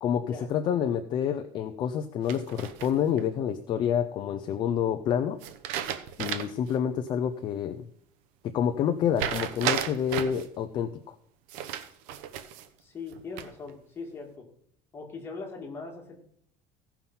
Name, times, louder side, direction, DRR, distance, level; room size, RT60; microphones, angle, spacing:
voice 1, 0.0-5.4 6.2-7.9 8.4-11.2, left 8 dB, 35° left, 8 dB, 0.6 m, -28 dB
sound 1, 2.3-3.2 5.4-6.7 7.1-7.2 9.2-10.5 11.5-12.7 13.1-13.7, right 10 dB, 80° right, 1.0 m, -33 dB
voice 2, 12.8-14.5 14.9-16.2, left 4 dB, 20° left, 0 dB, 2.2 m, -40 dB
16.0 x 5.8 x 5.6 m, 0.69 s
cardioid pair, 175°, 13 cm